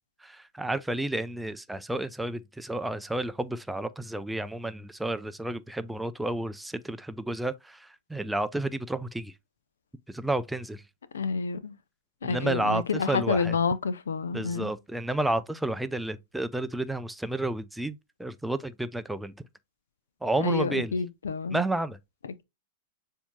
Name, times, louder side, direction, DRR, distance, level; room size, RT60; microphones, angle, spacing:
voice 1, 0.2-9.3 10.1-10.8 12.2-13.6 14.3-19.4 20.2-21.0 21.5-22.0, right 2 dB, 5° right, 0.4 m, -31 dB
voice 2, 11.1-11.7 12.2-14.7 20.4-21.6, left 5 dB, 85° left, 0.5 m, -28 dB
7.0 x 2.8 x 2.2 m
hypercardioid pair, 115°, 0 cm